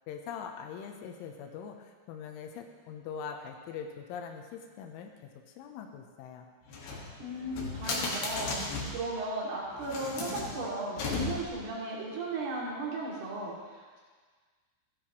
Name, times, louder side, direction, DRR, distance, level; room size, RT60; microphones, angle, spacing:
voice 1, 0.1-5.1 5.6-6.5, left 7 dB, 85° left, 3 dB, 3.3 m, -42 dB
sound 1, 6.7-9.1 9.7-11.7, left 3 dB, 60° left, 3.5 m, -36 dB
voice 2, 7.2-14.0, right 2 dB, 60° right, -6 dB, 4.5 m, -36 dB
15.5 x 10.5 x 3.1 m, 1.5 s
omnidirectional pair, 5.4 m